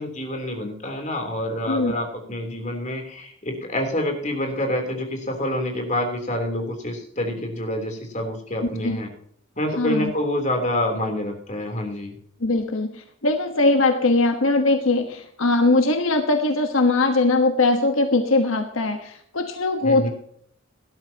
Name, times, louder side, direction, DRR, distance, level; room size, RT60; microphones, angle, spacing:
voice 1, 0.0-9.1 9.6-12.1 19.8-20.1, left 1 dB, 35° left, 3 dB, 3.4 m, -27 dB
voice 2, 1.7-2.0 8.8-9.0 9.8-10.1 12.4-20.1, left 2 dB, 75° left, 5 dB, 1.3 m, -21 dB
18.0 x 12.0 x 2.9 m, 0.65 s
head